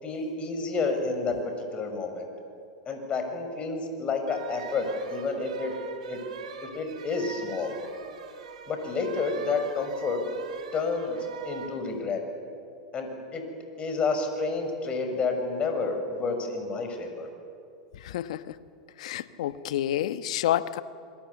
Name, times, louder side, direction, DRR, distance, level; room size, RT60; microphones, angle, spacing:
voice 1, 0.0-1.4 1.7-2.3 2.9-5.7 6.1-6.2 6.6-7.8 8.7-10.2 10.7-11.2 11.4-12.2 12.9-13.4 13.8-17.3, left 4 dB, 30° left, 5 dB, 6.3 m, -30 dB
sound 1, 4.3-11.8, right 5 dB, 75° right, 3.4 m, -42 dB
voice 2, 17.9-18.6 19.0-20.8, left 12 dB, 70° left, 14 dB, 1.2 m, -29 dB
27.0 x 23.0 x 8.5 m, 2.4 s
hypercardioid pair, 100°, 4 cm